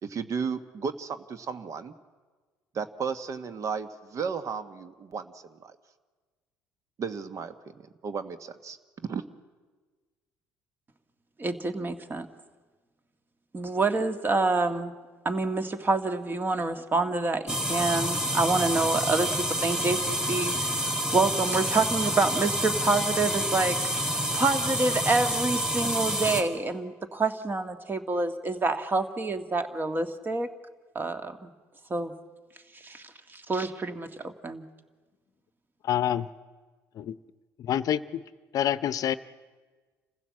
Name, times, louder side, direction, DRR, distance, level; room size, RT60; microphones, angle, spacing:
voice 1, 0.0-1.9 2.7-5.8 7.0-7.5 8.0-9.2, right 6 dB, 50° right, 11 dB, 1.4 m, -34 dB
voice 2, 11.4-12.3 13.5-14.9 15.3-20.8 21.1-30.5 31.0-31.5 31.9-32.1 32.8-33.0 33.3-34.6, right 3 dB, 30° right, 9 dB, 1.9 m, -27 dB
sound 1, 17.5-26.4, equal, 10° right, 3.8 m, -28 dB
voice 3, 35.9-36.3 37.0-37.1 37.7-38.2 38.5-39.2, left 10 dB, 55° left, 16 dB, 0.7 m, -26 dB
27.5 x 15.5 x 7.6 m, 1.4 s
hypercardioid pair, 65°, 7 cm